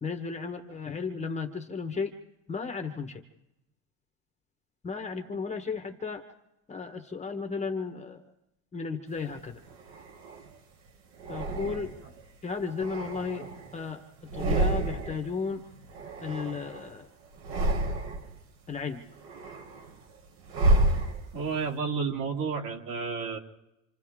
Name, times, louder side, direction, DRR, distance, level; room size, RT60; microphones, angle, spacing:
voice 1, 0.0-2.1 2.5-3.2 4.8-6.2 6.7-8.2 8.7-9.6 11.3-11.9 12.4-13.5 13.7-14.0 14.3-15.6 16.2-17.1 18.7-19.0, left 5 dB, 15° left, 5 dB, 1.2 m, -34 dB
sound 1, 9.3-10.5 11.2-12.1 12.6-13.9 14.2-15.3 15.5-16.9 17.3-18.4 18.8-21.6, right 2 dB, 70° right, 4.2 m, -30 dB
voice 2, 21.3-23.4, right 5 dB, 50° right, 2 dB, 3.0 m, -31 dB
27.5 x 27.5 x 3.7 m, 0.90 s
cardioid pair, 140°, 43 cm